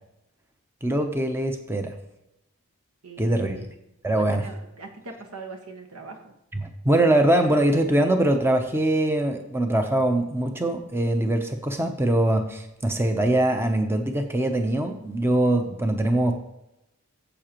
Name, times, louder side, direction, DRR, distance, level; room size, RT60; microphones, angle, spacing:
voice 1, 0.8-1.9 3.2-3.7 4.0-4.4 6.5-16.3, right 1 dB, 10° right, 5 dB, 0.6 m, -23 dB
voice 2, 3.0-3.7 4.1-6.3, right 3 dB, 75° right, 4 dB, 1.4 m, -41 dB
14.0 x 7.6 x 3.0 m, 0.88 s
head